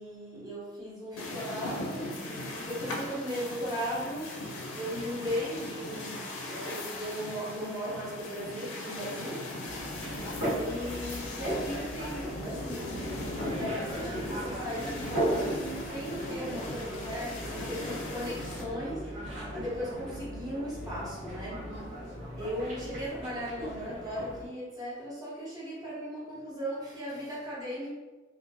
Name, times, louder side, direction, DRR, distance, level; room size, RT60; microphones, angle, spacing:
voice 1, 0.0-4.4 4.8-10.0 10.6-21.8 22.3-27.9, equal, 20° right, -8 dB, 0.8 m, -37 dB
sound 1, 1.2-18.6, left 2 dB, 80° left, 0.5 m, -39 dB
sound 2, 9.6-24.5, right 1 dB, 70° right, 1.3 m, -37 dB
2.3 x 2.0 x 2.6 m, 1.2 s
head